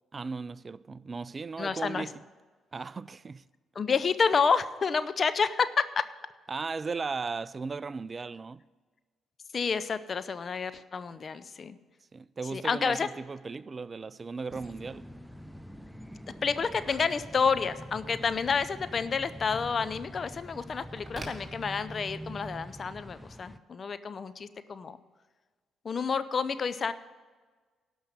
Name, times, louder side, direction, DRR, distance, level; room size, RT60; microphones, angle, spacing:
voice 1, 0.1-2.1 2.7-3.4 6.5-8.6 12.1-15.1, right 4 dB, 40° right, 0.4 m, -36 dB
voice 2, 1.6-2.1 3.7-6.1 9.5-11.8 12.5-13.1 16.4-25.0 25.8-26.9, left 5 dB, 45° left, 0.6 m, -29 dB
sound 1, 14.5-23.6, equal, ahead, 0.7 m, -45 dB
Telephone, 14.9-22.3, right 2 dB, 20° right, 2.9 m, -52 dB
12.0 x 5.6 x 9.2 m
hypercardioid pair, 45°, 0 cm